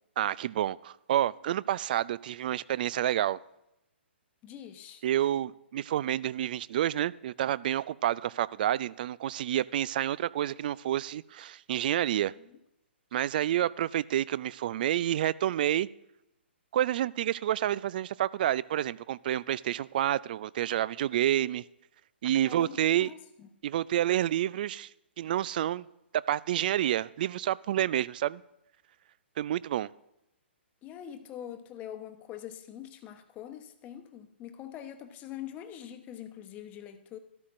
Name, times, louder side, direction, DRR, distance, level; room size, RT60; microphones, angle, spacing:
voice 1, 0.2-3.4 5.0-12.3 13.1-15.9 16.7-21.6 22.2-23.1 23.6-24.9 25.2-25.9 26.3-28.4 29.4-29.9, right 12 dB, 50° right, 0.3 m, -29 dB
voice 2, 4.4-5.0 12.5-12.6 22.4-23.5 30.8-37.2, left 10 dB, 25° left, 1.0 m, -44 dB
13.0 x 12.5 x 2.6 m
hypercardioid pair, 130°, 6 cm